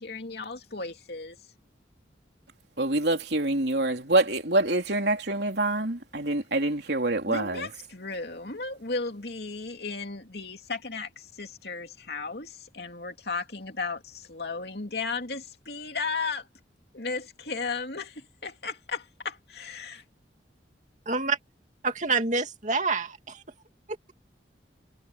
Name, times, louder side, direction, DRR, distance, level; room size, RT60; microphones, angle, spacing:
voice 1, 0.0-1.4 7.3-16.5 16.9-20.0, left 4 dB, 60° left, 2.9 m, -35 dB
voice 2, 2.8-7.7, right 2 dB, 65° right, 3.4 m, -26 dB
voice 3, 21.1-21.4 21.8-23.4, right 4 dB, 45° right, 2.5 m, -27 dB
head